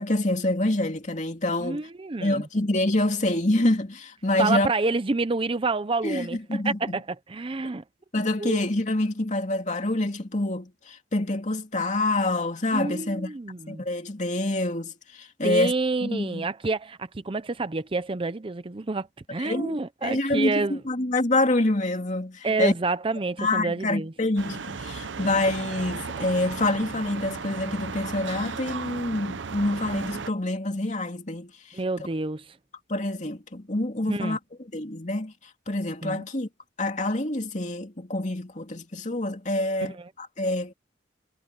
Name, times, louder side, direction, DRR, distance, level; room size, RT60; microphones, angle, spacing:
voice 1, 0.0-1.9 2.2-4.7 6.0-7.0 7.6-7.7 8.1-13.3 13.7-15.7 16.0-16.5 19.4-22.7 23.4-31.8 32.9-34.4 34.7-35.3 35.7-36.5 36.8-40.7, left 2 dB, 40° left, 2.6 m, -26 dB
voice 2, 1.6-2.4 4.4-7.8 8.4-8.6 12.7-13.8 15.4-20.8 22.4-24.1 31.7-32.5 34.1-34.4 36.0-36.2 40.0-40.1, right 3 dB, 30° right, 0.6 m, -28 dB
sound 1, 24.4-30.3, right 5 dB, 90° right, 0.7 m, -35 dB
head